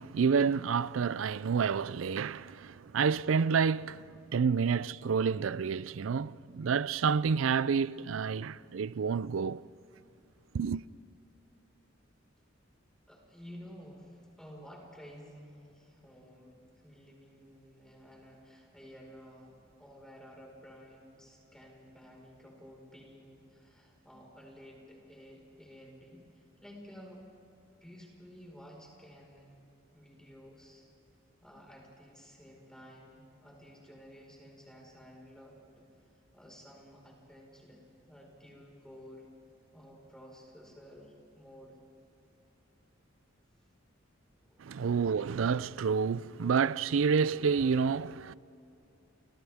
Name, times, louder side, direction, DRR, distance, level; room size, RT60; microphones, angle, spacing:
voice 1, 0.0-9.6 10.5-10.8 44.6-48.3, right 6 dB, 90° right, 0.4 m, -29 dB
voice 2, 13.1-26.2 26.6-27.2 27.8-29.5 29.9-30.9 31.4-35.8 36.3-39.3 39.7-41.8 44.4-44.7, equal, 5° left, 4.8 m, -53 dB
29.5 x 28.5 x 3.6 m
head